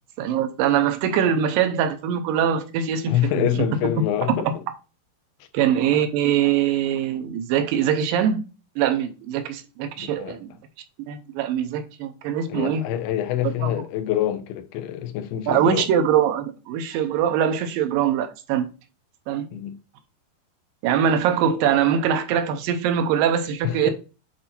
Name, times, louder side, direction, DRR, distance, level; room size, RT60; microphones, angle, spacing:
voice 1, 0.2-3.6 5.5-8.4 8.8-10.5 11.0-12.8 13.4-13.7 15.5-18.7 19.3-19.5 20.8-23.9, right 8 dB, 75° right, 2.2 m, -22 dB
voice 2, 3.1-4.5 10.0-10.4 12.5-15.9 19.5-19.7 23.6-23.9, left 11 dB, 75° left, 2.5 m, -26 dB
8.0 x 2.8 x 4.2 m
omnidirectional pair, 4.8 m